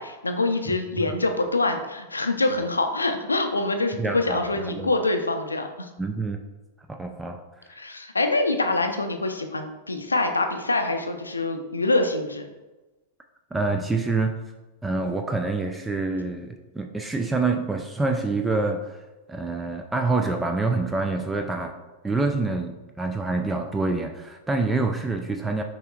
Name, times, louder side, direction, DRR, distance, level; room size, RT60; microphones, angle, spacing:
voice 1, 0.0-5.9 7.8-12.4, left 2 dB, 80° left, 6 dB, 0.5 m, -25 dB
voice 2, 4.0-4.9 6.0-6.4 6.9-7.4 13.5-14.4 14.8-19.0 19.3-21.7 22.0-25.6, right 3 dB, 10° right, 4 dB, 0.3 m, -26 dB
5.5 x 3.7 x 2.4 m, 1.1 s
figure-of-eight pair, 95°, 0 cm